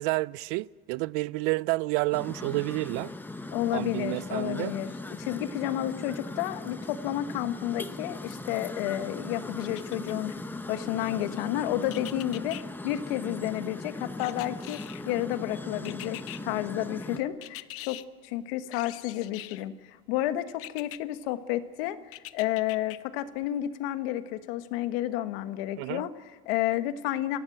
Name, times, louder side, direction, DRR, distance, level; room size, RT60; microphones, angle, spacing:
voice 1, 0.0-3.1 3.7-4.7 25.8-26.1, right 22 dB, 70° right, 0.5 m, -29 dB
sound 1, 2.1-17.2, left 2 dB, 5° left, 0.9 m, -39 dB
voice 2, 3.5-4.9 5.2-10.3 10.7-12.6 12.8-14.8 15.1-27.4, left 14 dB, 75° left, 1.3 m, -31 dB
sound 2, 9.6-10.4 11.9-12.6 14.2-15.2 15.9-16.4 17.4-18.0 18.7-19.7 20.6-21.0 22.1-23.0 23.4-23.5, left 17 dB, 50° left, 0.8 m, -43 dB
24.0 x 16.5 x 7.8 m
supercardioid pair, 120°, 30 cm